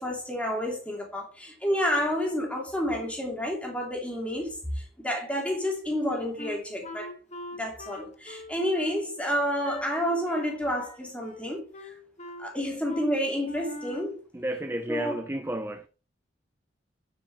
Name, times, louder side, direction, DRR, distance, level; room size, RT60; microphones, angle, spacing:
voice 1, 0.0-7.1 7.6-11.6 12.4-14.2 14.9-15.2, equal, 5° left, 3.0 m, -29 dB
Wind instrument woodwind instrument, 6.4-9.9 10.2-10.5 10.8-11.5 11.7-12.5 12.9-13.1 13.4-14.1, left 1 dB, 35° left, 1.4 m, -41 dB
voice 2, 14.3-15.9, right 1 dB, 10° right, 0.5 m, -32 dB
9.1 x 8.1 x 4.2 m
head